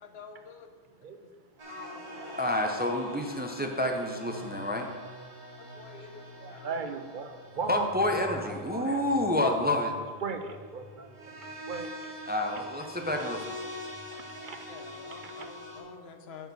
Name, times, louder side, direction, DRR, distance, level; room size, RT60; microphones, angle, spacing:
voice 1, 0.0-0.7 1.2-1.3 1.7-2.2 5.6-6.8 14.7-16.5, left 5 dB, 80° left, 6 dB, 1.1 m, -48 dB
Laughter / Crowd, 1.5-5.1, equal, 80° right, 1.7 m, -48 dB
sound 1, 1.6-15.8, equal, 30° right, 1.6 m, -44 dB
voice 2, 2.4-4.9 7.7-9.9 12.3-13.4, left 1 dB, 15° right, 3 dB, 0.5 m, -28 dB
voice 3, 6.4-9.0 9.3-9.4 10.2-12.1 13.1-13.7 14.1-15.5, right 5 dB, 60° right, 6 dB, 0.7 m, -39 dB
7.8 x 4.6 x 6.9 m, 1.5 s
omnidirectional pair, 1.1 m